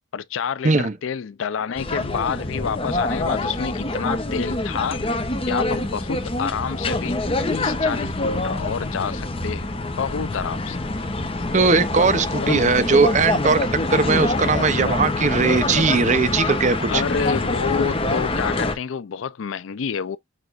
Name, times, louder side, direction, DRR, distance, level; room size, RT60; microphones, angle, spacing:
voice 1, 0.1-5.1 5.5-7.2 7.5-10.8 12.4-12.8 16.9-20.2, left 6 dB, 75° left, 0.4 m, -28 dB
voice 2, 0.6-1.0 11.5-13.6 13.9-17.0, right 4 dB, 35° right, 0.6 m, -19 dB
sound 1, 1.8-18.8, left 2 dB, 30° left, 0.8 m, -25 dB
6.3 x 3.3 x 2.5 m
head